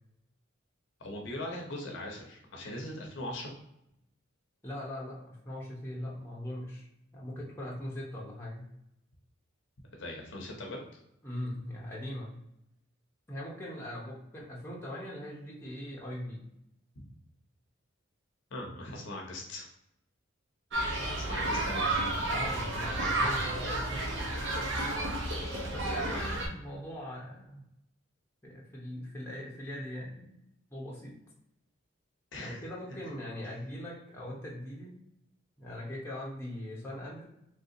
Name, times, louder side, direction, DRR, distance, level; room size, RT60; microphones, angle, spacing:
voice 1, 1.0-3.5 10.0-11.0 18.5-19.7 21.1-22.0 32.3-32.7, left 1 dB, 60° left, 0 dB, 0.7 m, -40 dB
voice 2, 4.6-6.9 7.1-8.7 11.2-12.4 13.3-16.5 22.3-24.0 25.7-27.6 28.4-30.4 30.7-31.1 32.4-35.0 35.6-37.3, left 1 dB, 10° left, -5 dB, 0.8 m, -41 dB
sound 1, 20.7-26.5, right 2 dB, 60° right, 0.7 m, -31 dB
3.4 x 2.7 x 2.6 m, 0.80 s
head